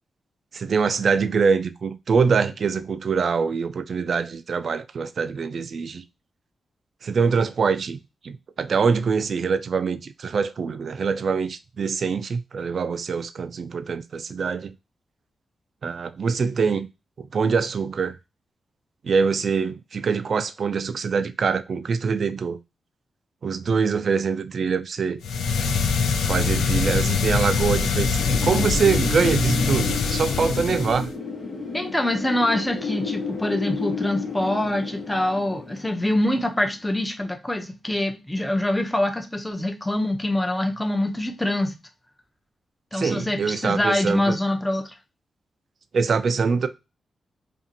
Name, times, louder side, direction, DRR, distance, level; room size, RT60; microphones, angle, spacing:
voice 1, 0.5-6.0 7.0-14.7 15.8-16.9 17.2-18.2 19.0-22.6 23.4-25.2 26.2-31.1 42.9-44.4 45.9-46.7, right 5 dB, 65° right, 0.3 m, -24 dB
sound 1, 25.2-31.1, left 5 dB, 90° left, 0.3 m, -23 dB
Wind, 28.2-36.9, left 4 dB, 70° left, 0.8 m, -32 dB
voice 2, 31.7-41.8 42.9-44.9, left 1 dB, 10° left, 0.6 m, -25 dB
2.6 x 2.4 x 2.6 m
cardioid pair, 55°, 0 cm